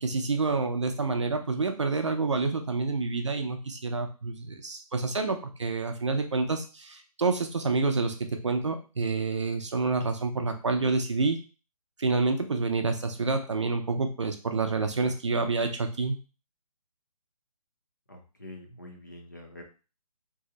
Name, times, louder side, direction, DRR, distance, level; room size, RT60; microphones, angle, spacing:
voice 1, 0.0-8.2 8.4-11.4 12.0-16.2, right 3 dB, 50° right, 5 dB, 0.5 m, -28 dB
voice 2, 18.1-19.6, left 1 dB, 30° left, 1 dB, 0.5 m, -46 dB
2.7 x 2.0 x 3.7 m, 0.33 s
hypercardioid pair, 180°, 20 cm